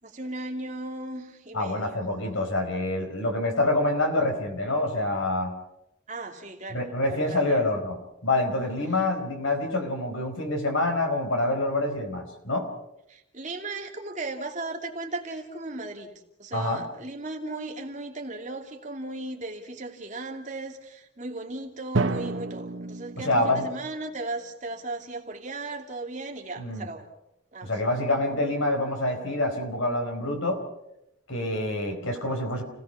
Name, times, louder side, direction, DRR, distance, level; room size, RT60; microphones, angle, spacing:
voice 1, 0.0-2.0 6.1-7.7 13.1-16.1 16.4-27.1 27.5-27.7, right 2 dB, 35° right, 2 dB, 2.7 m, -36 dB
voice 2, 1.5-5.5 6.7-8.0 8.2-12.7 16.5-16.8 23.2-23.7 26.6-26.9 27.6-30.6 31.3-32.6, left 2 dB, 85° left, 4 dB, 4.7 m, -26 dB
Drum, 21.9-23.9, right 3 dB, 70° right, 1.1 m, -30 dB
29.5 x 18.0 x 5.8 m, 0.85 s
head